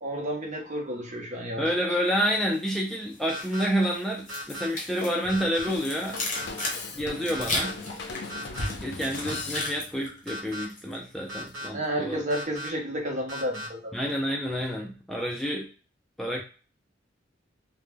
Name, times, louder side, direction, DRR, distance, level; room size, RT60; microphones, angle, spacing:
voice 1, 0.0-2.0 6.6-7.0 11.7-13.9, right 1 dB, 40° right, 1 dB, 0.7 m, -32 dB
voice 2, 1.6-6.2 7.0-7.8 8.8-12.2 13.9-15.7 16.2-16.4, equal, ahead, -1 dB, 0.3 m, -29 dB
sound 1, 2.1-2.8 3.1-11.0 11.3-11.6, left 2 dB, 40° left, 0.8 m, -36 dB
sound 2, 3.3-3.7 4.3-4.7 5.3-5.7 6.3-6.7 7.3-7.7 8.3-8.7 9.3-9.7 10.3-10.6 11.3-11.7 12.3-12.7 13.3-13.7, equal, 85° right, 0.9 m, -36 dB
Drum kit / Drum, 5.7-10.0, left 3 dB, 60° left, 0.5 m, -39 dB
2.2 x 2.1 x 3.3 m, 0.36 s
head